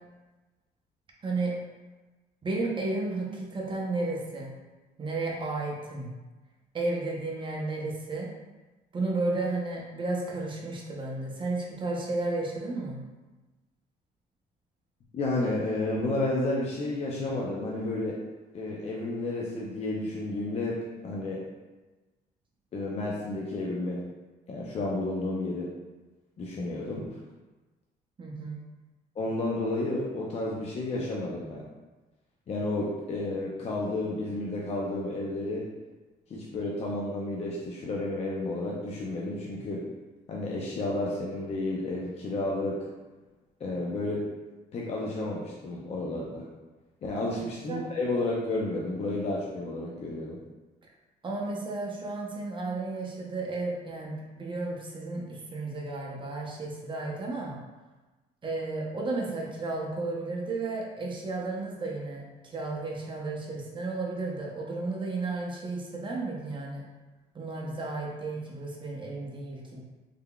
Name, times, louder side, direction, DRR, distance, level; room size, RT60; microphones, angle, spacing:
voice 1, 1.2-1.5 2.4-4.5 5.0-6.1 6.7-8.3 8.9-13.0 28.2-28.6 47.2-47.4 47.7-47.9 51.2-57.6 58.4-66.8 67.3-69.8, right 2 dB, 30° right, -2 dB, 0.7 m, -33 dB
voice 2, 15.1-18.2 18.5-20.8 21.0-21.4 22.7-24.0 24.5-25.7 26.4-27.2 29.2-31.7 32.5-35.6 36.3-39.8 40.3-42.9 43.6-44.2 44.7-46.5 47.0-50.4, left 2 dB, 40° left, -4 dB, 0.5 m, -31 dB
3.6 x 3.4 x 2.2 m, 1.2 s
cardioid pair, 110°, 17 cm